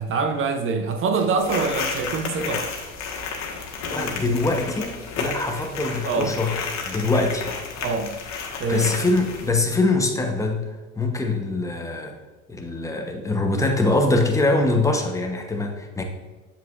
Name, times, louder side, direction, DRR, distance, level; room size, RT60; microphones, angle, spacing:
voice 1, 0.0-2.7 6.0-6.3 7.8-8.1 8.6-9.0 13.8-13.9, right 4 dB, 30° right, 0.7 m, -24 dB
sound 1, 1.4-9.5, left 5 dB, 40° left, 1.6 m, -32 dB
voice 2, 3.9-7.5 8.7-10.7 11.0-12.2 12.5-16.0, left 2 dB, 5° left, 1.0 m, -23 dB
7.9 x 7.4 x 2.5 m
hypercardioid pair, 95°, 43 cm